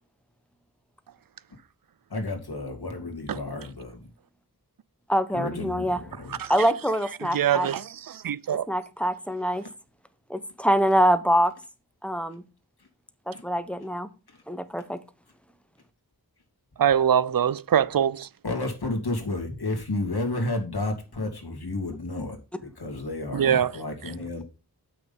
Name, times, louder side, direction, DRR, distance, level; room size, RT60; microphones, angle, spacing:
voice 1, 2.1-4.0 5.3-6.4 13.3-13.4 18.4-24.4, left 2 dB, 75° left, 2.5 m, -31 dB
voice 2, 5.1-6.0 6.5-7.7 8.7-9.6 10.3-11.5 12.0-12.4 13.3-14.1 14.5-15.0, equal, 5° left, 1.0 m, -24 dB
voice 3, 7.2-8.7 16.8-18.3 23.3-23.8, right 9 dB, 60° right, 0.5 m, -23 dB
7.8 x 6.3 x 5.5 m
wide cardioid pair, 50°, 38 cm